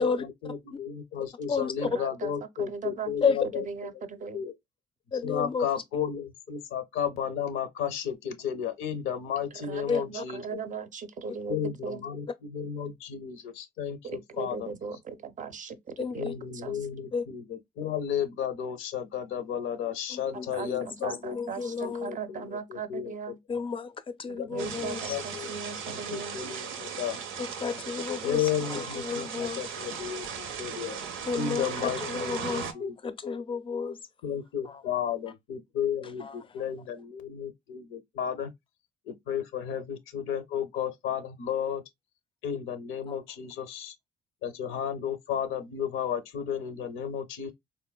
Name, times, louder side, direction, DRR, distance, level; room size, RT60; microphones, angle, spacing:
voice 1, 0.0-4.1 4.3-4.5 5.2-10.4 11.5-14.7 16.1-21.4 21.8-23.1 24.4-25.5 25.9-27.2 28.2-31.0 31.3-33.0 34.2-38.5 39.1-41.8 42.4-43.9 44.4-47.5, left 8 dB, 90° left, 0.6 m, -33 dB
voice 2, 1.8-3.1 3.5-4.4 9.5-11.6 11.8-12.0 14.0-16.3 16.5-16.9 20.3-23.4 24.3-26.4, right 5 dB, 40° right, 0.4 m, -38 dB
voice 3, 5.1-5.6 9.9-10.0 16.0-16.3 17.1-17.2 20.1-22.1 23.5-23.9 24.2-25.2 27.4-28.4 28.8-29.6 31.3-34.0 36.2-36.3 43.1-43.2, left 5 dB, 25° left, 0.4 m, -31 dB
sound 1, 24.6-32.7, right 6 dB, 90° right, 0.5 m, -37 dB
3.7 x 2.1 x 2.2 m
cardioid pair, 90°, 20 cm